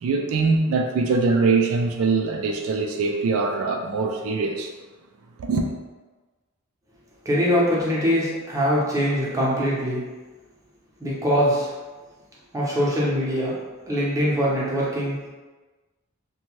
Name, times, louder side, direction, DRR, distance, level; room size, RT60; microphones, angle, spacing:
voice 1, 0.0-4.7 5.4-5.7, right 4 dB, 85° right, 3 dB, 0.3 m, -22 dB
voice 2, 7.2-10.0 11.0-11.7 12.5-13.6 13.9-15.3, equal, 15° right, -6 dB, 0.7 m, -22 dB
2.7 x 2.2 x 3.0 m, 1.3 s
head